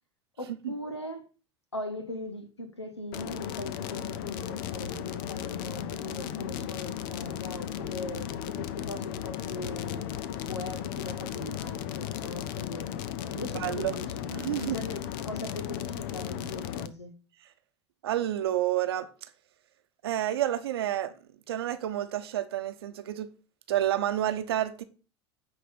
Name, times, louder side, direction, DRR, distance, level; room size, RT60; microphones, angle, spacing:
voice 1, 0.4-1.3 1.7-12.9 13.3-14.1 14.5-17.1, left 1 dB, 85° left, 1.4 m, -40 dB
sound 1, 3.1-16.9, left 10 dB, 55° left, 0.7 m, -35 dB
voice 2, 13.6-13.9 14.3-14.8 18.0-19.1 20.0-21.1 21.5-23.3 23.7-24.8, right 12 dB, 65° right, 1.0 m, -29 dB
9.6 x 4.2 x 5.9 m
figure-of-eight pair, 75°, 14 cm